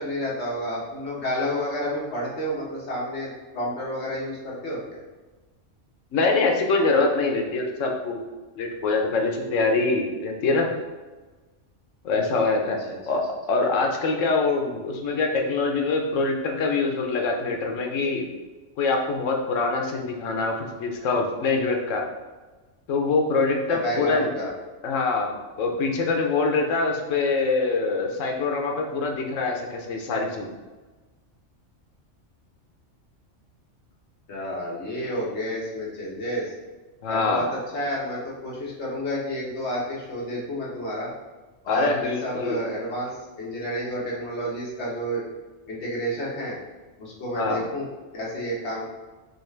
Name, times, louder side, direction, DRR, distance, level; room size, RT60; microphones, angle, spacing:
voice 1, 0.0-5.0 12.9-13.0 23.7-24.5 34.3-36.5 37.1-41.1 41.6-45.2 45.7-46.5 47.0-47.9 48.1-48.9, equal, 65° left, -5 dB, 1.4 m, -30 dB
voice 2, 6.1-8.2 8.5-10.7 12.0-18.3 18.8-22.0 22.9-24.3 24.8-30.5 37.0-37.5 41.7-42.6 47.3-47.6, left 3 dB, 85° left, 2 dB, 1.0 m, -24 dB
5.2 x 2.4 x 3.2 m, 1.2 s
omnidirectional pair, 1.3 m